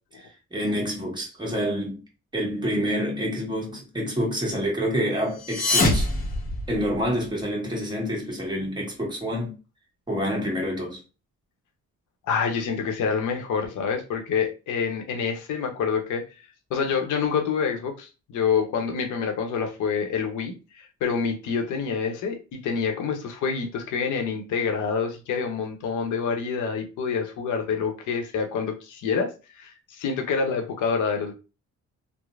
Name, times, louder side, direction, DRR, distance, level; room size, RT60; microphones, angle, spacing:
voice 1, 0.5-2.0 2.3-6.1 6.7-9.5 10.1-11.0, equal, 15° right, 1.3 m, -27 dB
sound 1, 5.3-7.2, left 2 dB, 30° left, 0.8 m, -25 dB
voice 2, 12.3-16.2 16.7-31.3, left 6 dB, 80° left, 0.8 m, -27 dB
3.2 x 2.0 x 2.3 m
cardioid pair, 90°, 30 cm